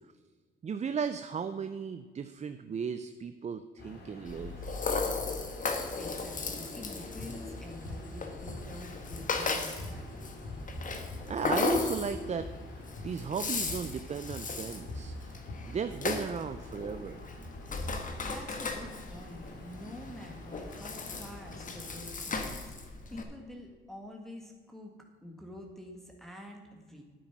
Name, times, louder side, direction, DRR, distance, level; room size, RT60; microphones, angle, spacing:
voice 1, 0.6-4.7 11.3-12.5 12.7-15.1 15.7-17.2, right 6 dB, 35° right, 10 dB, 0.5 m, -36 dB
sound 1, 3.8-22.0, left 2 dB, 55° left, 2.8 m, -49 dB
Rattle (instrument), 4.3-23.2, left 4 dB, 40° left, 1.6 m, -36 dB
voice 2, 5.7-10.3 10.7-10.9 17.8-27.0, equal, ahead, 0 dB, 1.7 m, -47 dB
sound 2, 7.2-7.4 7.8-8.1 8.5-9.5 9.8-10.0 10.3-10.8 11.0-12.0 12.3-12.6 13.0-13.2 13.7-13.9 14.3-16.3, left 2 dB, 80° left, 2.5 m, -43 dB
9.1 x 8.8 x 5.9 m, 1.5 s
cardioid pair, 90°, 20 cm